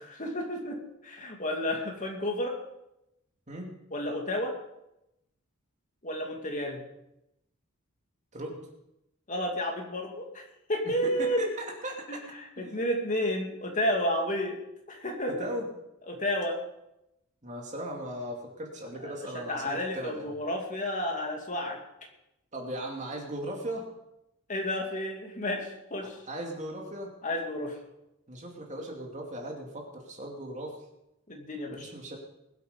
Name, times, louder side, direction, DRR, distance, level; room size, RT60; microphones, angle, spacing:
voice 1, 0.2-2.6 3.9-4.5 6.0-6.8 9.3-10.4 10.7-11.5 12.1-14.6 14.9-15.3 16.1-16.6 19.0-21.8 24.5-26.2 27.2-27.8 31.3-31.9, equal, 35° left, 1 dB, 2.4 m, -31 dB
voice 2, 11.0-12.2 12.6-12.7 15.4-15.7 17.4-20.3 22.5-23.8 26.3-27.1 28.3-30.8 31.7-32.2, right 1 dB, 35° right, 0 dB, 2.6 m, -37 dB
21.5 x 8.3 x 5.2 m, 0.86 s
head